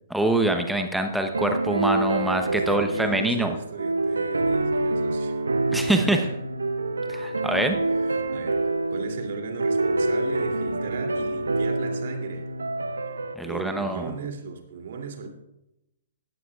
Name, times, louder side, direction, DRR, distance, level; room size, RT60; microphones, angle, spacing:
voice 1, 0.1-3.5 5.7-6.2 7.1-7.8 13.4-14.2, right 1 dB, ahead, 6 dB, 0.9 m, -25 dB
sound 1, 1.3-13.3, right 2 dB, 75° right, 0.9 m, -27 dB
voice 2, 2.4-5.4 5.8-6.3 7.8-12.4 13.0-13.2 13.4-15.3, right 5 dB, 50° right, 3 dB, 2.7 m, -37 dB
18.5 x 14.0 x 2.4 m, 0.90 s
figure-of-eight pair, 120°, 0 cm